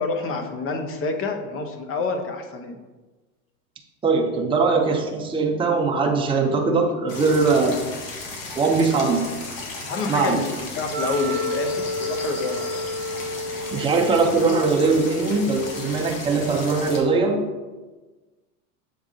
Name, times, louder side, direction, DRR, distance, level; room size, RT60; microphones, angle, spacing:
voice 1, 0.0-2.8 9.9-12.7, left 3 dB, 30° left, 5 dB, 0.9 m, -28 dB
voice 2, 4.0-7.8 8.6-9.3 10.1-10.4 13.7-17.4, right 4 dB, 10° right, 0 dB, 0.8 m, -21 dB
sound 1, 7.1-17.0, left 3 dB, 65° left, 1.7 m, -35 dB
Wind instrument woodwind instrument, 10.9-16.0, left 1 dB, 30° right, 1.4 m, -31 dB
7.1 x 3.7 x 3.7 m, 1.2 s
hypercardioid pair, 105°, 44 cm